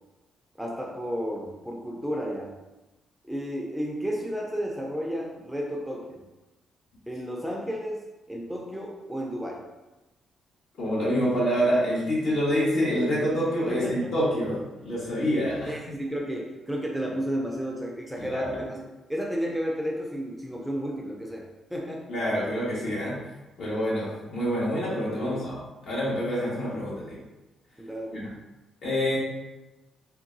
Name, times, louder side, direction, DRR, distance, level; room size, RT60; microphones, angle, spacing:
voice 1, 0.6-2.5 3.2-6.2 7.1-8.0 8.3-9.7 13.7-14.3 15.1-15.2 15.7-18.8 19.1-22.1 25.2-25.5 27.8-28.3, equal, 5° right, -1 dB, 0.4 m, -32 dB
voice 2, 10.8-15.7 18.2-18.6 22.1-23.2 23.6-27.2 28.1-28.2 28.8-29.2, equal, 70° left, -7 dB, 1.4 m, -27 dB
3.7 x 2.3 x 2.6 m, 1.1 s
cardioid pair, 90°, 0 cm